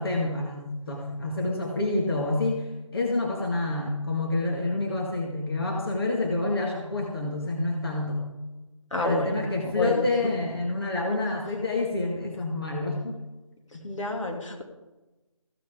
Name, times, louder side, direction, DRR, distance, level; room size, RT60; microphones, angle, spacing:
voice 1, 0.0-8.2 9.0-13.2 13.7-13.8, left 2 dB, 45° left, -1 dB, 2.0 m, -28 dB
voice 2, 8.9-9.3 9.8-10.0 13.8-14.6, left 1 dB, 70° left, 1 dB, 2.9 m, -28 dB
15.5 x 13.0 x 3.8 m, 1.1 s
figure-of-eight pair, 160°, 17 cm